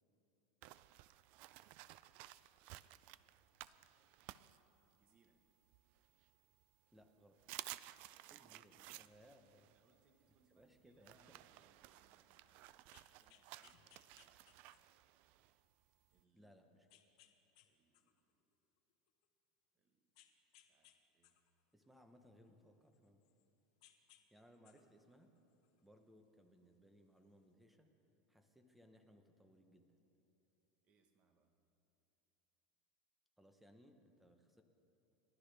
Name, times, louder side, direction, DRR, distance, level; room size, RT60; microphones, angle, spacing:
sound 1, 0.6-5.3 5.7-6.6 7.0-7.1 7.4-16.2, right 16 dB, 45° right, 0.3 m, -56 dB
voice 1, 2.9-3.4 4.8-5.4 7.9-8.2 9.6-12.8 13.1-14.4 16.1-16.5 17.6-18.3 19.7-20.1 20.6-21.4 24.2-24.3 30.8-31.6, right 4 dB, 30° right, 5 dB, 1.2 m, -77 dB
voice 2, 6.9-7.4 8.3-9.7 10.5-11.2 16.3-16.9 21.7-23.2 24.3-25.4 25.8-27.9 28.3-29.9 33.4-34.6, equal, 5° right, 6 dB, 0.9 m, -66 dB
sound 2, 12.8-15.1 15.6-15.7 16.9-17.7 17.9-19.3 20.2-21.0 21.2-23.4 23.8-24.2 24.5-26.0 27.0-27.1, left 12 dB, 55° left, 1.1 m, -68 dB
30.0 x 11.5 x 3.4 m, 3.0 s
supercardioid pair, 165°, 4 cm